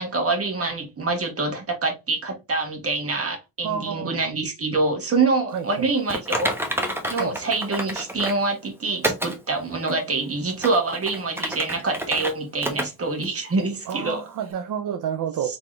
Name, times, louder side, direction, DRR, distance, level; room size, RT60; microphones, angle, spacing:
voice 1, 0.0-14.2, right 3 dB, 40° right, 1.7 m, -26 dB
voice 2, 3.6-4.2 5.5-5.9 7.1-7.3 13.9-15.6, right 8 dB, 60° right, 0.6 m, -29 dB
Typing, 6.1-8.4 9.0-9.4 9.9-10.0 10.5-12.3 12.6-12.9 13.2-13.3 13.9-14.0, right 1 dB, 5° right, 1.0 m, -28 dB
4.0 x 3.5 x 3.2 m
cardioid pair, 115°, 36 cm